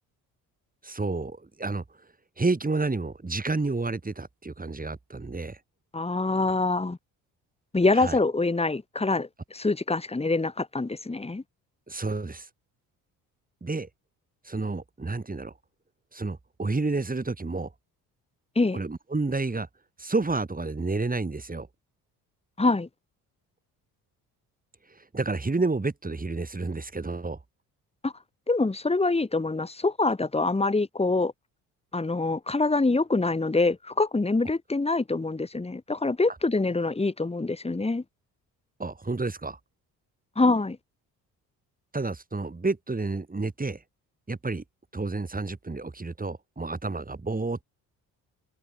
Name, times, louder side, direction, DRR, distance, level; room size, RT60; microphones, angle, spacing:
voice 1, 0.8-1.8 2.4-5.6 7.9-8.2 11.9-12.5 13.6-13.9 14.4-15.5 16.1-17.7 18.7-19.7 20.0-21.7 25.0-27.4 38.8-39.6 41.9-43.8 44.3-44.6 44.9-47.6, right 3 dB, 20° right, 3.6 m, -30 dB
voice 2, 5.9-7.0 7.7-11.4 18.6-18.8 22.6-22.9 28.0-28.1 28.5-31.3 31.9-38.0 40.4-40.8, left 3 dB, 15° left, 1.9 m, -25 dB
hypercardioid pair, 55°, 41 cm